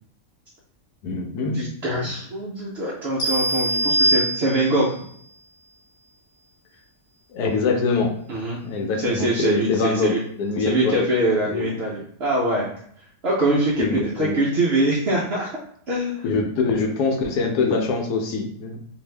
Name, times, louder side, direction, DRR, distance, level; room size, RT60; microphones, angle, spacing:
voice 1, 1.0-1.6 7.3-8.1 8.6-11.1 11.5-11.7 13.8-14.4 16.2-18.8, left 4 dB, 75° left, 3 dB, 1.1 m, -24 dB
voice 2, 1.5-4.9 8.3-8.6 9.0-10.2 10.6-12.7 13.2-15.6 15.9-16.2, right 1 dB, 70° right, -5 dB, 0.6 m, -23 dB
sound 1, 3.2-4.9, right 1 dB, 30° left, 0.4 m, -22 dB
2.6 x 2.4 x 3.2 m, 0.65 s
omnidirectional pair, 1.7 m